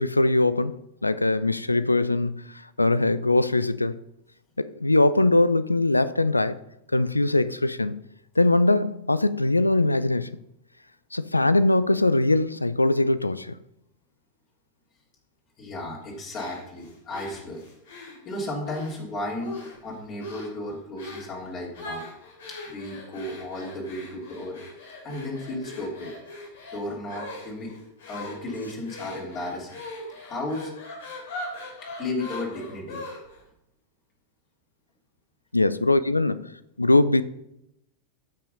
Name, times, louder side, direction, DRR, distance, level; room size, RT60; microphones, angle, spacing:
voice 1, 0.0-2.4 2.8-4.0 4.6-6.6 6.9-8.0 8.4-10.3 11.1-13.5 35.5-37.2, left 2 dB, 85° left, 0.4 m, -22 dB
voice 2, 15.6-22.0 22.5-24.6 25.0-26.1 26.7-27.7 28.1-29.7 30.2-30.7 32.0-33.0, left 1 dB, 30° left, 3.1 m, -34 dB
sound 1, 16.3-19.0 19.4-19.9 20.2-20.6 21.0-21.3 21.7-33.4, left 2 dB, 60° left, 3.2 m, -40 dB
13.0 x 6.0 x 5.4 m
figure-of-eight pair, 90°, 0 cm